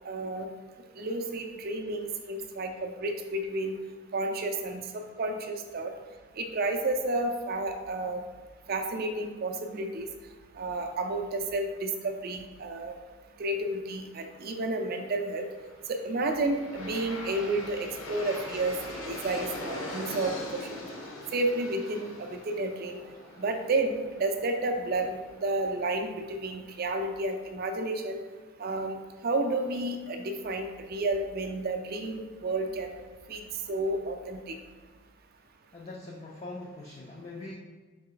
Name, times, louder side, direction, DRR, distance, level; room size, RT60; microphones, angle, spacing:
voice 1, 0.1-0.5 1.0-3.7 4.1-4.8 5.2-5.9 6.4-8.2 8.7-10.1 10.6-13.0 13.4-15.5 15.9-18.8 19.1-20.8 21.3-23.0 23.4-28.2 28.6-29.0 29.2-33.4 33.7-34.5, right 2 dB, 45° right, 5 dB, 0.4 m, -31 dB
Aircraft, 15.7-26.7, left 1 dB, 75° left, 0.8 m, -42 dB
voice 2, 35.7-37.5, left 2 dB, 30° left, -3 dB, 0.3 m, -42 dB
4.2 x 3.2 x 3.8 m, 1.3 s
head